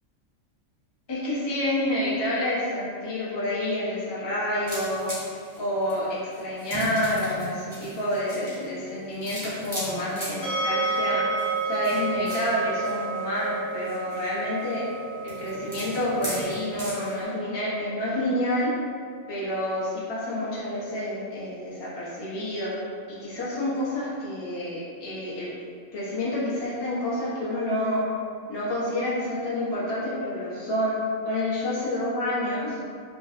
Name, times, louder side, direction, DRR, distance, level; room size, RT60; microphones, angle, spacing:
voice 1, 1.1-5.1 5.6-11.3 11.6-14.9 15.2-18.7 19.3-22.7 23.2-25.5 25.9-28.0 28.5-31.0 31.2-32.8, left 1 dB, 35° left, -9 dB, 0.4 m, -28 dB
sound 1, 4.7-17.2, equal, 10° right, 0.7 m, -39 dB
sound 2, 10.4-23.4, right 3 dB, 55° left, 1.1 m, -33 dB
2.6 x 2.1 x 2.4 m, 2.1 s
omnidirectional pair, 1.3 m